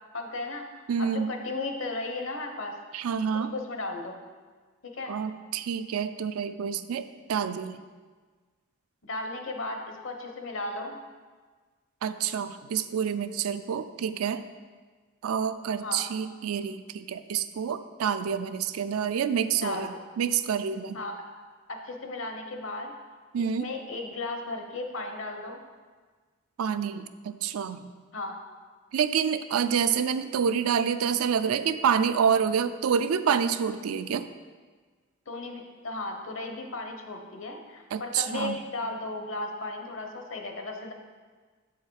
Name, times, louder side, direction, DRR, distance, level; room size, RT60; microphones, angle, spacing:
voice 1, 0.1-2.7 3.3-4.2 4.8-5.1 9.0-11.0 15.8-16.1 19.5-20.0 20.9-21.1 21.7-22.9 23.4-25.6 28.1-28.4 35.3-40.9, left 2 dB, 65° left, 4 dB, 0.9 m, -35 dB
voice 2, 0.9-1.3 2.9-3.5 5.1-7.8 12.0-14.4 15.2-21.0 23.3-23.7 26.6-27.9 28.9-34.3 37.9-38.6, right 7 dB, 85° right, 11 dB, 0.4 m, -28 dB
8.0 x 4.6 x 4.8 m, 1.5 s
head